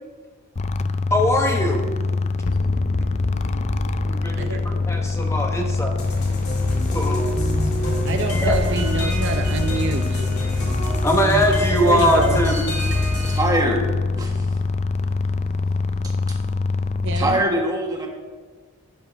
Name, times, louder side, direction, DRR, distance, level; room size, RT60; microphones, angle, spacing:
sound 1, 0.6-17.3, left 3 dB, 30° left, 0.4 m, -24 dB
voice 1, 1.1-1.9 4.1-5.9 6.9-7.2 8.4-8.6 11.0-12.6, equal, 15° left, 1 dB, 0.9 m, -21 dB
sound 2, 1.8-12.3, left 2 dB, 80° left, 0.8 m, -33 dB
sound 3, 6.0-13.4, equal, 50° left, 2.5 m, -27 dB
voice 2, 8.1-10.3 11.7-12.4 17.0-17.4, right 3 dB, 55° right, 6 dB, 0.6 m, -26 dB
voice 3, 13.3-13.9 14.2-14.6 16.0-16.4 17.1-18.1, right 1 dB, 15° right, 0 dB, 1.5 m, -23 dB
12.5 x 10.5 x 3.4 m, 1.5 s
head